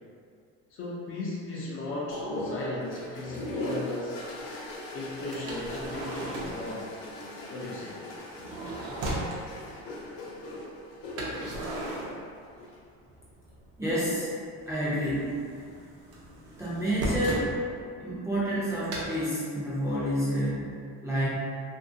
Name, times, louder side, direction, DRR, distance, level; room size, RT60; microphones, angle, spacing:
voice 1, 0.7-4.2 4.9-6.9 7.5-8.0, left 2 dB, 45° left, -5 dB, 0.5 m, -36 dB
sound 1, 2.1-12.8 14.0-14.5, left 1 dB, 90° left, 0.7 m, -39 dB
sound 2, 5.3-6.7 8.2-9.4 11.2-12.8 13.1-14.0 14.2-17.5 18.9-19.1, right 1 dB, 50° right, 0.7 m, -36 dB
voice 2, 13.8-14.3 14.7-15.4 16.6-17.5 18.0-21.3, equal, 10° right, -10 dB, 0.5 m, -29 dB
2.7 x 2.6 x 2.6 m, 2.3 s
cardioid pair, 160°, 31 cm